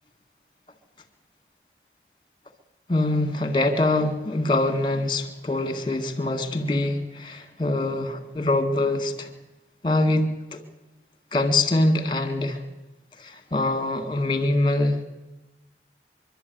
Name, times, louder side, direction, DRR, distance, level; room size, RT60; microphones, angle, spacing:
voice 1, 2.9-9.3 9.8-10.6 11.3-12.6 13.2-15.0, left 2 dB, 25° left, 7 dB, 2.0 m, -24 dB
24.0 x 12.0 x 9.4 m, 1.0 s
head